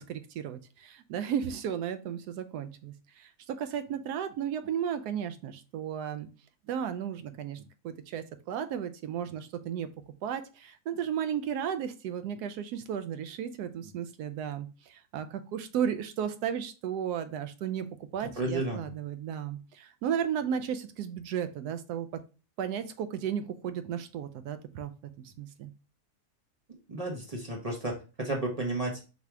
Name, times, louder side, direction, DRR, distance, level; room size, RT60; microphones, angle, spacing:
voice 1, 0.0-6.3 6.7-9.9 10.2-22.2 22.6-24.9 25.2-25.7, right 8 dB, 85° right, 10 dB, 1.1 m, -34 dB
voice 2, 18.4-18.9 26.9-29.0, right 2 dB, 30° right, 0 dB, 0.8 m, -32 dB
4.0 x 2.7 x 4.6 m, 0.33 s
omnidirectional pair, 1.7 m